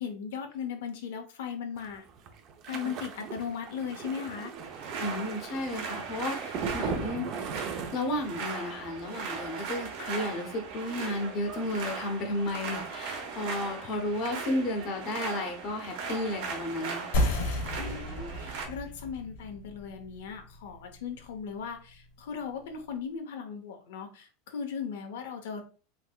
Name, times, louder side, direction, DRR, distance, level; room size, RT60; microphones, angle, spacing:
voice 1, 0.0-2.0 2.6-4.5 17.8-25.6, left 7 dB, 85° left, 4 dB, 0.7 m, -37 dB
sound 1, 1.8-8.5 8.8-9.1 9.4-9.6, right 5 dB, 35° right, 0.5 m, -39 dB
sound 2, 4.5-18.7, right 5 dB, 60° right, 1.0 m, -38 dB
voice 2, 5.0-7.4 7.9-17.0, left 1 dB, 35° left, 3 dB, 0.7 m, -33 dB
sound 3, 17.1-22.3, left 1 dB, 60° left, 1.1 m, -33 dB
3.4 x 3.3 x 2.2 m, 0.36 s
supercardioid pair, 165°, 0 cm